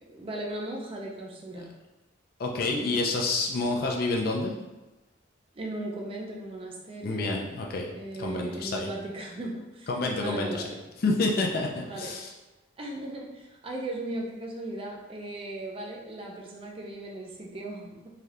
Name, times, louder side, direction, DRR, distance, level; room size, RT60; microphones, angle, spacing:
voice 1, 0.1-1.7 2.9-3.1 5.5-7.5 8.0-10.8 11.8-12.1 12.8-17.9, right 1 dB, 30° right, -1 dB, 0.4 m, -37 dB
voice 2, 2.4-4.5 7.0-7.9 8.2-8.9 9.9-10.5 11.0-12.3, left 3 dB, 50° left, 0 dB, 0.4 m, -28 dB
3.3 x 2.7 x 2.4 m, 1.1 s
head